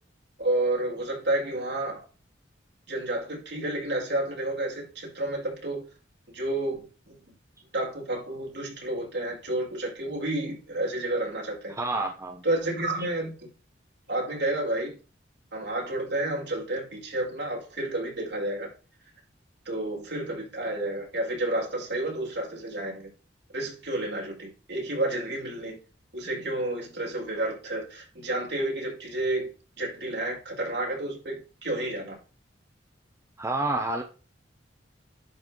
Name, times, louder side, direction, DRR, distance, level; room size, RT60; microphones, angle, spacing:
voice 1, 0.4-2.0 2.9-5.8 6.3-7.2 7.7-11.7 12.4-13.5 14.1-15.0 15.5-18.7 19.6-23.1 23.5-25.8 26.1-29.5 29.8-32.2, right 1 dB, 65° right, 5.2 m, -30 dB
voice 2, 11.7-12.4 33.4-34.0, right 2 dB, 15° right, 0.8 m, -29 dB
11.0 x 4.2 x 5.3 m
head